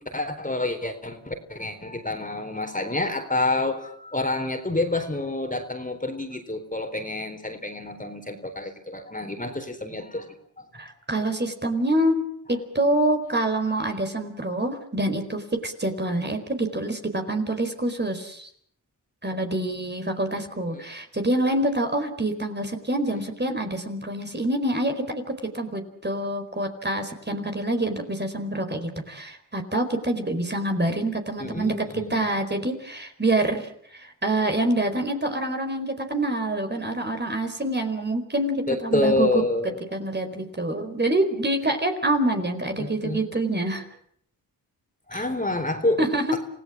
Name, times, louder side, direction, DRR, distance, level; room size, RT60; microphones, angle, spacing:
voice 1, 0.1-10.3 10.6-10.7 20.7-20.8 31.4-32.3 38.7-39.8 42.8-43.2 45.1-46.0 46.3-46.4, left 2 dB, 20° left, 6 dB, 4.1 m, -28 dB
voice 2, 10.7-12.2 12.5-18.5 19.2-25.2 25.5-39.4 39.9-43.9 45.1-45.2 46.0-46.4, right 1 dB, 25° right, 6 dB, 4.5 m, -26 dB
27.5 x 17.0 x 7.5 m, 0.62 s
cardioid pair, 55°, 43 cm